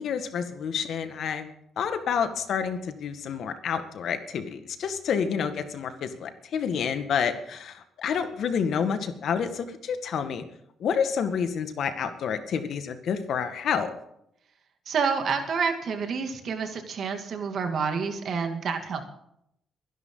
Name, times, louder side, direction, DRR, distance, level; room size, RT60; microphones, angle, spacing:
voice 1, 0.0-1.5 1.8-10.4 10.8-13.9, left 7 dB, 65° left, 8 dB, 1.9 m, -29 dB
voice 2, 14.9-19.0, right 5 dB, 55° right, 5 dB, 2.5 m, -28 dB
23.0 x 11.0 x 4.0 m, 0.76 s
cardioid pair, 120°, 0 cm